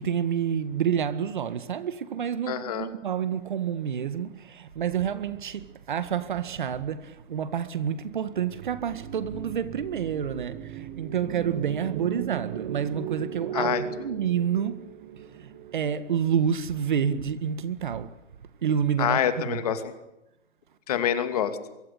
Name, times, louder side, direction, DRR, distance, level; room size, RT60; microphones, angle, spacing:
voice 1, 0.0-14.9 15.3-18.1 18.6-19.2 19.4-19.6, right 8 dB, 40° right, 1.8 m, -29 dB
voice 2, 2.5-2.9 13.5-13.8 19.0-19.9 20.9-21.6, left 9 dB, 30° left, 2.5 m, -26 dB
sound 1, 8.4-16.7, right 9 dB, 15° right, 1.4 m, -37 dB
24.0 x 23.5 x 8.3 m
hypercardioid pair, 165°, 37 cm